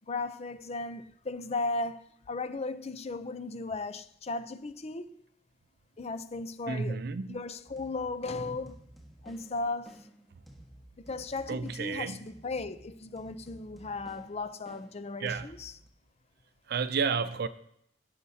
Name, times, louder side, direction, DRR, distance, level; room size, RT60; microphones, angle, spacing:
voice 1, 0.1-5.2 6.0-7.0 7.3-8.8 9.2-10.0 11.0-15.8, left 3 dB, 35° left, 0.5 m, -36 dB
voice 2, 6.7-7.4 11.5-12.2 15.2-15.5 16.7-17.5, right 5 dB, 60° right, 0.5 m, -31 dB
sound 1, 7.7-15.9, right 1 dB, ahead, 1.3 m, -54 dB
16.5 x 6.6 x 2.8 m
head